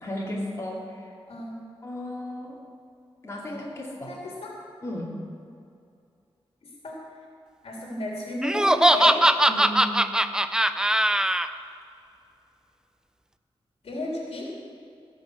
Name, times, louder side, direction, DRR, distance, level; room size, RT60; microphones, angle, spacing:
voice 1, 0.0-1.0 1.8-2.6 3.2-4.1 4.8-5.1 9.5-9.9, left 1 dB, 25° left, -4 dB, 2.6 m, -34 dB
voice 2, 1.3-1.6 4.1-4.5 6.6-7.0 7.6-9.2 13.8-14.5, left 2 dB, 80° left, -2 dB, 3.0 m, -33 dB
Laughter, 8.4-11.5, right 1 dB, 5° right, 0.5 m, -20 dB
17.5 x 6.4 x 7.8 m, 2.5 s
wide cardioid pair, 115°, 10 cm